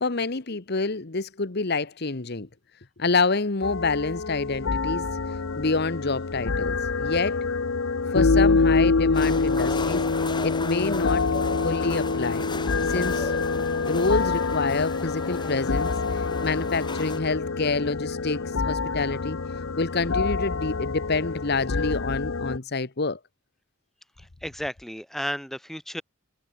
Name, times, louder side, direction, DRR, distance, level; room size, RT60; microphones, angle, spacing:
voice 1, 0.0-2.5 3.0-7.4 8.1-10.0 10.4-11.3 11.6-12.5 12.9-13.3 13.9-19.4 19.8-23.2, left 3 dB, 55° left, 1.2 m, -27 dB
sound 1, 3.6-22.6, left 4 dB, 70° left, 0.8 m, -26 dB
sound 2, 9.1-17.2, left 3 dB, 20° left, 1.8 m, -36 dB
voice 2, 24.2-26.0, equal, ahead, 3.2 m, -33 dB
head